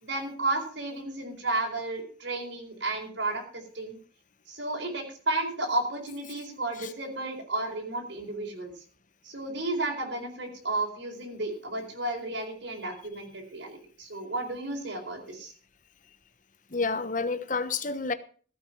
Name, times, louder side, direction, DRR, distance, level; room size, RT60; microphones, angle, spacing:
voice 1, 0.0-4.0 4.5-8.7 9.2-15.5, right 2 dB, 65° right, 4.6 m, -33 dB
voice 2, 16.7-18.1, left 4 dB, 40° left, 1.1 m, -29 dB
15.5 x 8.6 x 5.9 m
head